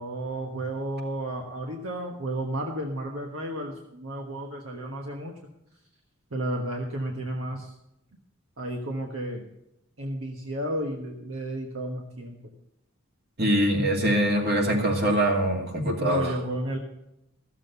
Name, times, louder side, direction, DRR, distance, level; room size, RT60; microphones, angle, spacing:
voice 1, 0.0-5.3 6.3-7.7 8.6-9.4 10.0-12.4 16.0-16.8, right 1 dB, 70° right, 2 dB, 1.3 m, -32 dB
voice 2, 13.4-16.4, right 1 dB, 50° right, 2 dB, 2.4 m, -23 dB
14.0 x 7.4 x 6.8 m, 0.85 s
head